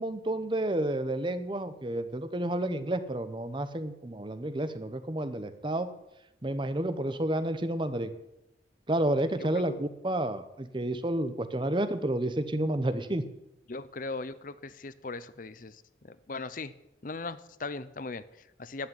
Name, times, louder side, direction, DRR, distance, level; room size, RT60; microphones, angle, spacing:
voice 1, 0.0-5.9 6.4-8.1 8.9-13.2, right 1 dB, 25° right, 11 dB, 0.9 m, -30 dB
voice 2, 9.5-9.9 13.7-16.7 17.0-18.9, left 3 dB, 50° left, 14 dB, 0.7 m, -39 dB
11.5 x 8.7 x 9.3 m, 0.88 s
head